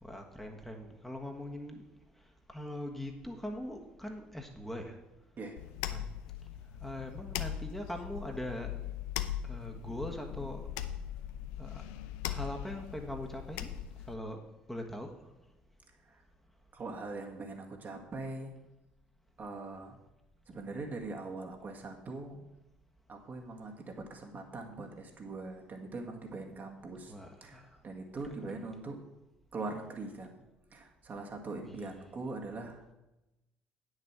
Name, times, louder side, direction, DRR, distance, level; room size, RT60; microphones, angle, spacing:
voice 1, 0.0-1.9 2.5-5.0 5.9-6.0 6.8-8.7 9.4-10.6 11.6-11.8 12.3-13.7 14.1-14.4 14.7-15.1 27.1-27.7 31.6-31.7, left 1 dB, 5° left, 2 dB, 1.5 m, -41 dB
sound 1, 5.6-14.1, left 11 dB, 70° left, 0.6 m, -40 dB
voice 2, 16.7-18.5 19.4-20.0 20.5-22.5 23.1-27.1 27.4-29.0 29.5-30.4 30.7-32.9, right 3 dB, 40° right, 2 dB, 1.9 m, -42 dB
9.4 x 6.5 x 6.0 m, 0.96 s
figure-of-eight pair, 55°, 5 cm